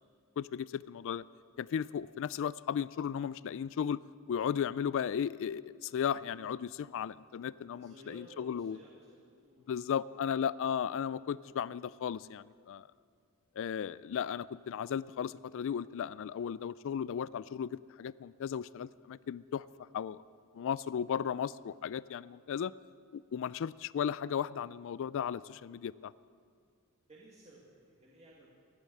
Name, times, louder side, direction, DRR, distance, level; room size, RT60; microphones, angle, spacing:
voice 1, 0.4-1.2 1.6-4.0 4.3-8.8 9.7-12.9 13.6-19.7 19.9-20.2 20.5-22.7 23.1-26.1, left 8 dB, 60° left, 19 dB, 0.3 m, -35 dB
voice 2, 7.7-9.7 27.1-28.5, equal, 30° right, -5 dB, 2.1 m, -56 dB
15.0 x 10.5 x 8.5 m, 2.1 s
head